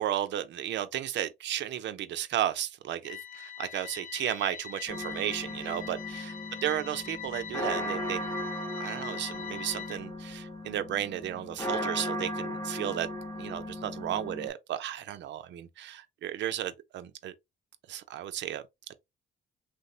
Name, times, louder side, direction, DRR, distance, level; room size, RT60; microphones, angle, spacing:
voice 1, 0.0-6.4 6.6-8.3 8.8-13.1 13.4-17.3 17.9-18.9, right 11 dB, 65° right, 0.5 m, -34 dB
sound 1, 3.0-10.0, left 10 dB, 50° left, 0.4 m, -42 dB
sound 2, 4.9-14.5, equal, 15° left, 0.7 m, -37 dB
3.2 x 2.0 x 2.7 m
cardioid pair, 90°, 20 cm